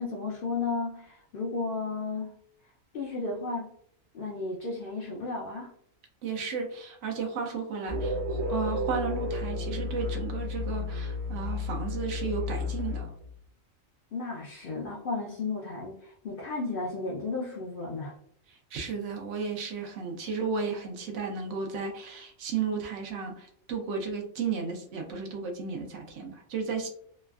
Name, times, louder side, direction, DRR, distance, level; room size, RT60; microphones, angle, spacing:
voice 1, 0.0-2.3 2.9-3.7 4.1-5.7 14.1-18.2, left 3 dB, 60° left, -3 dB, 0.6 m, -33 dB
voice 2, 6.2-13.1 18.5-26.9, right 5 dB, 70° right, 3 dB, 0.9 m, -34 dB
sound 1, 7.9-13.4, left 2 dB, 35° right, 0.7 m, -32 dB
3.1 x 2.4 x 2.2 m, 0.62 s
omnidirectional pair, 1.4 m